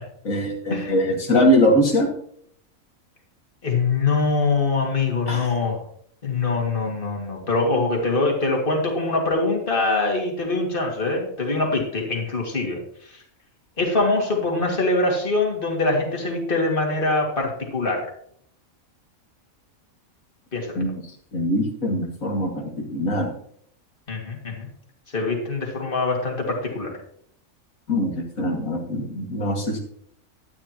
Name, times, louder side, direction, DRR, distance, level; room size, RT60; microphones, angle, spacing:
voice 1, 0.2-2.1 5.3-5.5 20.8-20.9 21.3-23.3 27.9-29.8, equal, 75° left, 1 dB, 2.5 m, -22 dB
voice 2, 3.6-5.8 6.2-13.2 13.8-18.0 20.5-20.8 24.1-24.7 25.1-26.9, left 3 dB, 40° left, 0 dB, 2.5 m, -23 dB
12.0 x 10.5 x 3.0 m, 0.64 s
omnidirectional pair, 1.5 m